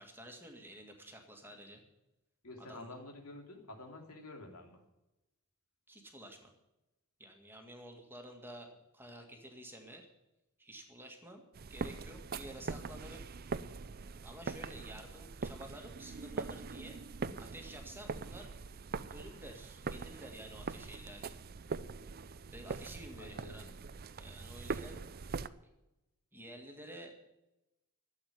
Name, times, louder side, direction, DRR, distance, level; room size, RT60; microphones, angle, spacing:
voice 1, 0.0-1.8 2.6-2.9 5.9-6.5 7.2-10.1 10.6-11.4 11.7-13.3 14.2-17.0 17.4-18.5 19.0-21.4 22.5-23.7 24.2-25.0 26.3-27.2, right 1 dB, 10° right, 3 dB, 2.0 m, -51 dB
voice 2, 2.4-4.8 23.2-23.7, left 2 dB, 85° left, 3 dB, 3.0 m, -49 dB
sound 1, 11.5-25.5, right 4 dB, 45° right, 0.5 m, -42 dB
13.0 x 8.3 x 9.4 m, 0.94 s
head